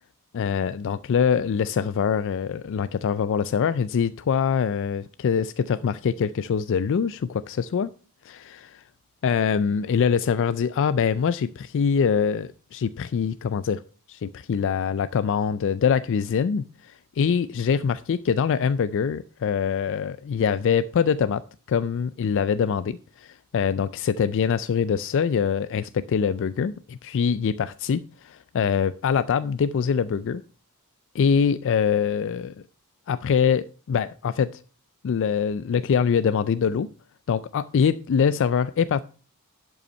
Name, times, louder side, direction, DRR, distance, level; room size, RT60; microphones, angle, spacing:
voice 1, 0.3-7.9 8.2-8.8 9.2-13.8 14.1-30.4 31.1-32.6 33.1-34.6 35.0-36.9 37.3-39.0, left 6 dB, 55° left, 15 dB, 0.3 m, -24 dB
11.5 x 5.5 x 5.3 m, 0.38 s
head